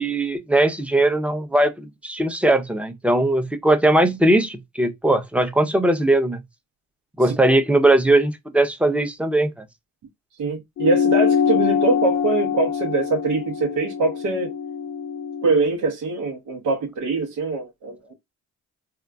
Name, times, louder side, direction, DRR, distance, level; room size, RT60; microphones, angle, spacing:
voice 1, 0.0-6.4 7.2-9.5, right 1 dB, 5° right, 0.6 m, -19 dB
voice 2, 10.4-14.5 15.4-18.1, right 3 dB, 85° right, 0.9 m, -23 dB
sound 1, 10.8-15.6, left 7 dB, 55° left, 0.5 m, -23 dB
3.6 x 2.3 x 2.3 m
cardioid pair, 90°, 30 cm